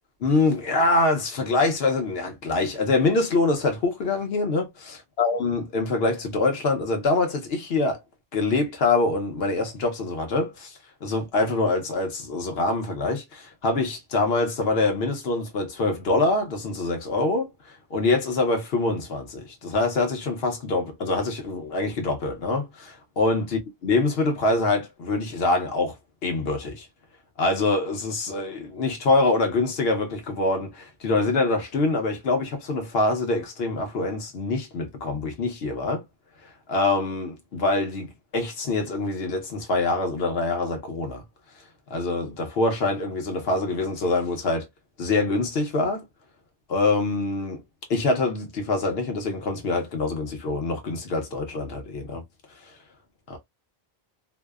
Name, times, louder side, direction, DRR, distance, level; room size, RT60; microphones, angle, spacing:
voice 1, 0.2-8.0 8.3-17.5 17.9-23.5 23.8-26.0 26.2-26.9 27.4-36.0 36.7-41.2 41.9-44.7 45.0-46.0 46.7-47.6 47.9-52.2 53.3-53.4, left 3 dB, 75° left, 1.0 m, -25 dB
2.7 x 2.0 x 2.3 m
omnidirectional pair, 1.0 m